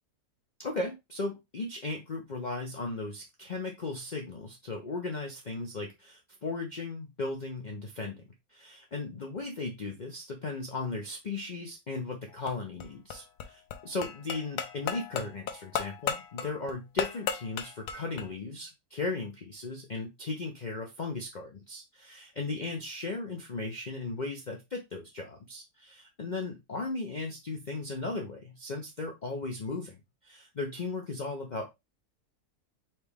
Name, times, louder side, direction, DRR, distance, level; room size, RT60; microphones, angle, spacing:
voice 1, 0.6-8.2 8.5-30.0 30.2-31.7, left 3 dB, 45° left, 1 dB, 0.6 m, -36 dB
sound 1, 12.3-18.3, left 8 dB, 70° left, 1.0 m, -36 dB
4.3 x 3.0 x 3.4 m, 0.21 s
omnidirectional pair, 1.7 m